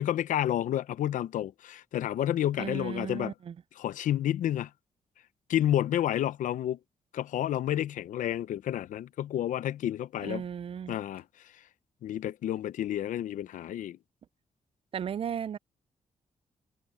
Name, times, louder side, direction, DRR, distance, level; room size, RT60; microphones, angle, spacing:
voice 1, 0.0-3.3 3.8-4.7 5.5-6.8 7.1-10.4 10.9-11.6 12.0-14.0, left 11 dB, 80° left, 0.7 m, -30 dB
voice 2, 2.6-3.5 10.2-11.0 14.9-15.6, right 8 dB, 45° right, 0.4 m, -35 dB
cardioid pair, 85°, 13 cm